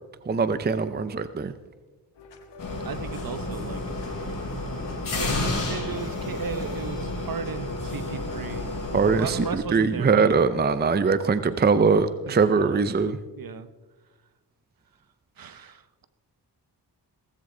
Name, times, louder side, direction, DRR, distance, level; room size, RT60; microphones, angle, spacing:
voice 1, 0.3-1.5 8.9-13.2, right 5 dB, 25° right, 12 dB, 0.6 m, -22 dB
sound 1, 2.2-8.6, left 4 dB, 85° left, 1.6 m, -43 dB
sound 2, 2.6-9.5, left 2 dB, 50° left, 5.9 m, -31 dB
voice 2, 2.8-3.8 5.1-8.7 9.1-10.3 12.3-12.8 13.4-13.7 15.4-16.1, right 6 dB, 55° right, 11 dB, 1.0 m, -36 dB
17.0 x 15.0 x 3.9 m, 1.2 s
cardioid pair, 95°, 42 cm